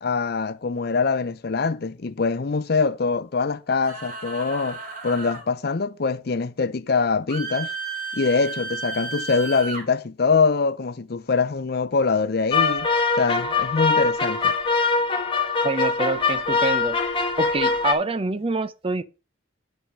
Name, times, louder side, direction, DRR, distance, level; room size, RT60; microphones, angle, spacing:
voice 1, 0.0-7.7 8.1-12.9 13.2-14.5, left 4 dB, 55° left, 0.6 m, -24 dB
sound 1, 3.8-5.5 7.3-9.8, right 4 dB, 45° right, 2.5 m, -33 dB
sound 2, 12.5-17.9, left 4 dB, 25° left, 1.4 m, -22 dB
voice 2, 15.6-17.0 17.4-19.0, right 3 dB, 30° right, 0.5 m, -26 dB
8.7 x 5.7 x 6.2 m
head